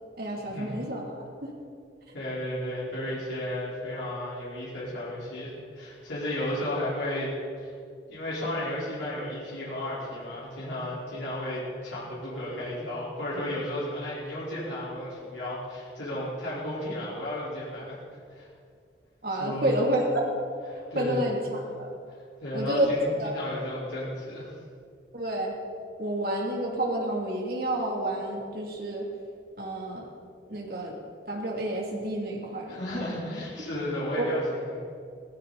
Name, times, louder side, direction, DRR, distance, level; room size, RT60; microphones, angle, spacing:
voice 1, 0.2-1.5 19.2-20.4 20.7-21.9 22.5-22.9 23.2-23.4 25.1-25.5 26.0-29.0 29.6-30.1 30.5-30.9 31.2-32.8 34.2-34.3, right 1 dB, 55° right, -2 dB, 3.1 m, -30 dB
voice 2, 2.1-7.3 7.6-7.7 8.1-18.0 18.3-18.5 19.4-19.8 20.7-21.2 22.4-24.5 32.7-34.8, left 1 dB, 90° left, -8 dB, 4.8 m, -33 dB
17.5 x 17.0 x 4.3 m, 2.3 s
head